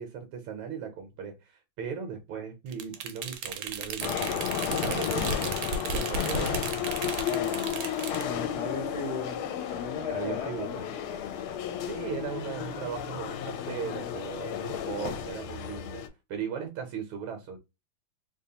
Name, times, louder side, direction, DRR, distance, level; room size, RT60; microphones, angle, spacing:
voice 1, 0.0-5.6 5.9-6.8 10.1-10.9 11.8-17.6, right 7 dB, 70° right, 1.5 m, -38 dB
sound 1, 2.7-8.3, right 5 dB, 90° right, 1.5 m, -35 dB
sound 2, 4.0-16.1, left 9 dB, 80° left, 1.4 m, -33 dB
voice 2, 7.2-10.9, left 6 dB, 60° left, 1.3 m, -37 dB
3.5 x 2.9 x 2.8 m
omnidirectional pair, 2.4 m